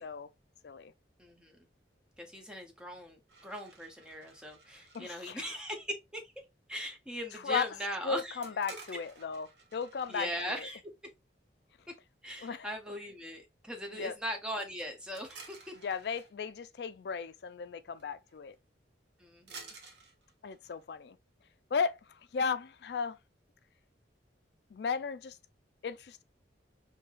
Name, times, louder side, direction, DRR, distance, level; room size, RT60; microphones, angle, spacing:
voice 1, 1.2-1.6 2.2-6.2 6.7-8.4 10.1-10.8 12.2-15.7 19.2-19.7, equal, 5° right, 0.7 m, -40 dB
sound 1, 3.3-5.0 8.4-10.4 15.1-16.3 18.0-18.1 18.3-18.5 19.5-20.9, right 4 dB, 70° right, 0.9 m, -52 dB
voice 2, 4.9-5.4 7.3-7.7 8.0-10.7 12.4-12.7 13.9-14.2 15.8-18.6 20.4-21.2 21.7-23.2 24.7-25.4 25.8-26.2, left 6 dB, 60° left, 0.4 m, -35 dB
4.5 x 2.7 x 2.4 m
head